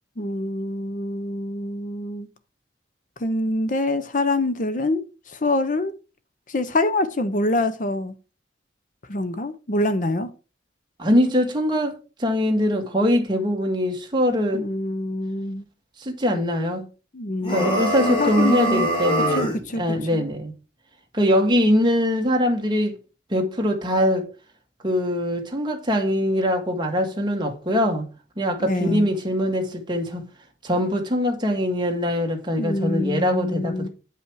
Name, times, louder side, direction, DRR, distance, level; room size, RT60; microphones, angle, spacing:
voice 1, 0.2-2.3 3.2-5.9 6.5-8.1 9.1-10.3 14.5-15.6 17.1-18.9 19.4-20.2 28.6-29.1 32.6-33.9, left 2 dB, 45° left, 0.7 m, -25 dB
voice 2, 11.0-14.7 16.0-16.8 17.5-20.5 21.1-22.9 23.3-24.3 24.8-28.0 28.4-30.2 30.6-33.9, equal, 25° right, 1.7 m, -22 dB
sound 1, 17.4-19.6, right 1 dB, 25° left, 2.8 m, -24 dB
9.2 x 5.6 x 4.7 m
head